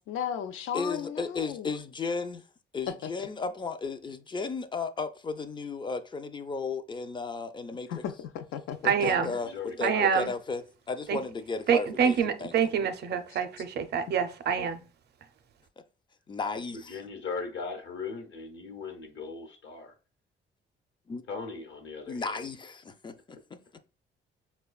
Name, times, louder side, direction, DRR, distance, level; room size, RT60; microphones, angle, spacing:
voice 1, 0.0-1.7 7.9-8.9, left 9 dB, 85° left, 0.5 m, -35 dB
voice 2, 0.7-2.4 2.7-7.9 8.8-9.5 9.8-12.7 16.3-17.0 21.1-21.2 22.1-23.6, left 4 dB, 25° left, 0.4 m, -34 dB
voice 3, 8.8-9.4 9.8-10.3 11.1-11.2 11.7-14.8, right 7 dB, 55° right, 0.5 m, -26 dB
voice 4, 9.4-10.1 16.9-19.9 21.3-22.5, left 4 dB, 65° left, 0.9 m, -38 dB
4.8 x 2.2 x 2.3 m
cardioid pair, 90°, 20 cm